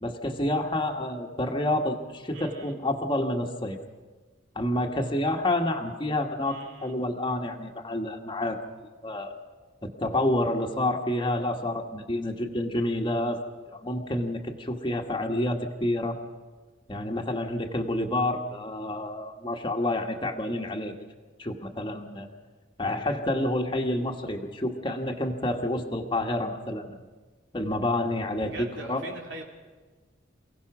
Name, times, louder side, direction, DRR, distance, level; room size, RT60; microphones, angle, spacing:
voice 1, 0.0-3.8 4.5-8.6 9.0-9.4 9.8-13.4 13.7-16.2 16.9-20.9 21.4-22.3 22.8-27.0 27.5-28.5 28.8-29.0, left 1 dB, 25° left, 2 dB, 1.5 m, -29 dB
voice 2, 2.3-2.7 6.4-6.9 28.4-29.4, right 2 dB, 90° right, 0 dB, 3.6 m, -41 dB
28.0 x 17.0 x 6.1 m, 1.3 s
head